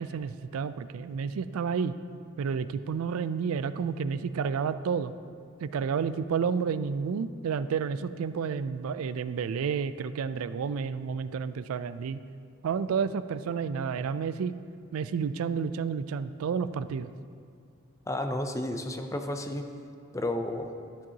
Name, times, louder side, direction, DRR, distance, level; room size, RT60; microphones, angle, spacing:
voice 1, 0.0-1.9 2.4-5.1 5.6-12.2 12.6-14.5 14.9-17.1, right 6 dB, 80° right, 14 dB, 0.3 m, -30 dB
voice 2, 18.1-19.7 20.1-20.7, left 1 dB, 15° left, 5 dB, 0.5 m, -32 dB
12.5 x 7.5 x 2.8 m, 2.3 s
head